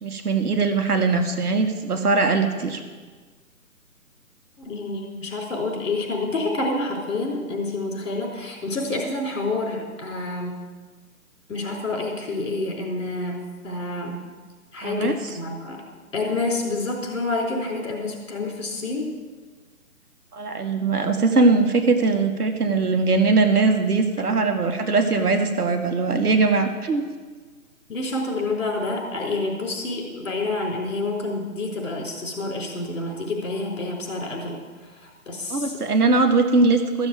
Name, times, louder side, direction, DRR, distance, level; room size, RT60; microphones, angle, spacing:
voice 1, 0.0-2.8 14.8-15.1 20.3-27.0 35.5-37.1, right 3 dB, 75° right, 5 dB, 1.9 m, -21 dB
voice 2, 4.6-10.6 11.5-14.2 14.7-15.8 16.1-19.1 24.3-24.4 27.9-35.7, left 2 dB, 55° left, 0 dB, 4.2 m, -28 dB
14.0 x 7.2 x 7.6 m, 1.4 s
hypercardioid pair, 175°, 46 cm